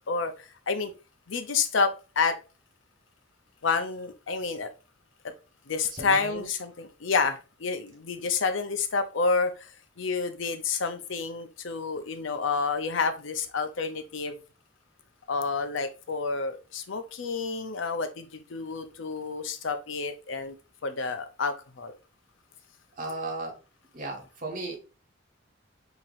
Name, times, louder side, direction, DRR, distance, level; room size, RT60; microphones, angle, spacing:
voice 1, 0.1-0.9 1.3-2.4 3.6-4.7 5.7-9.7 10.0-14.4 15.3-20.5 20.8-21.9, left 4 dB, 70° left, 9 dB, 0.6 m, -29 dB
voice 2, 5.9-6.4 23.0-23.6 23.9-24.8, right 2 dB, 45° right, 1 dB, 1.4 m, -35 dB
5.7 x 2.9 x 2.5 m, 0.32 s
head